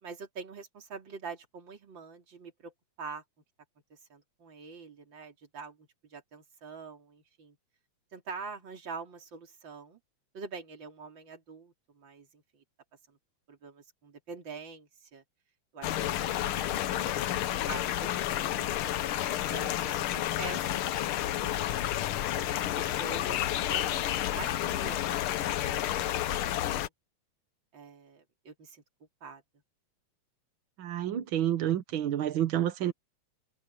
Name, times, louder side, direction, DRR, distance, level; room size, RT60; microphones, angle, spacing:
voice 1, 0.0-2.7 3.0-3.2 4.1-7.6 8.1-10.0 10.3-12.6 13.1-13.2 13.5-15.2 15.7-16.6 16.9-18.7 19.3-21.2 21.4-21.8 22.4-23.4 23.7-25.9 26.3-26.4 26.6-26.9 27.7-28.8 29.2-29.4, right 5 dB, 40° right, 3.9 m, -45 dB
sound 1, 15.8-26.9, left 13 dB, 90° left, 1.1 m, -30 dB
voice 2, 30.8-32.9, right 11 dB, 60° right, 1.4 m, -29 dB
omnidirectional pair, 3.4 m